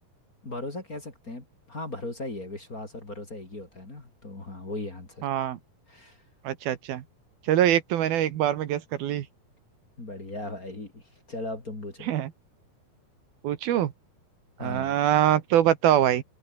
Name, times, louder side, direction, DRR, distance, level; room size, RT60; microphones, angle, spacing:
voice 1, 0.4-5.3 5.9-6.2 10.0-11.0 11.3-12.1 14.6-15.0, left 2 dB, 20° left, 3.6 m, -37 dB
voice 2, 5.2-5.6 6.4-7.0 7.5-9.2 12.0-12.3 13.4-13.9 14.6-16.2, right 11 dB, 70° right, 3.2 m, -23 dB
omnidirectional pair, 4.6 m